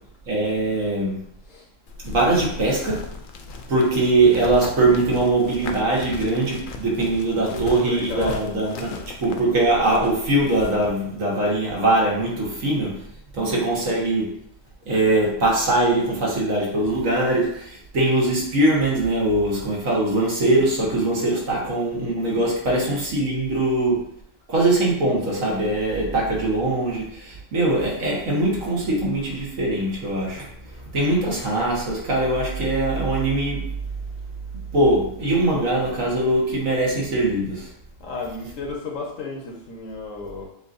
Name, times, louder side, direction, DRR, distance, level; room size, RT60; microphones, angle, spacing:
voice 1, 0.3-1.2 2.0-3.0 3.7-13.0 13.3-14.3 14.9-24.0 24.5-30.5 30.9-33.7 34.7-37.7, right 2 dB, 80° right, -3 dB, 1.7 m, -22 dB
sound 1, 1.9-10.9, left 4 dB, 60° left, 0.5 m, -36 dB
voice 2, 7.5-9.1 38.0-40.4, left 3 dB, 80° left, -1 dB, 1.5 m, -33 dB
6.9 x 2.7 x 2.6 m, 0.69 s
omnidirectional pair, 1.3 m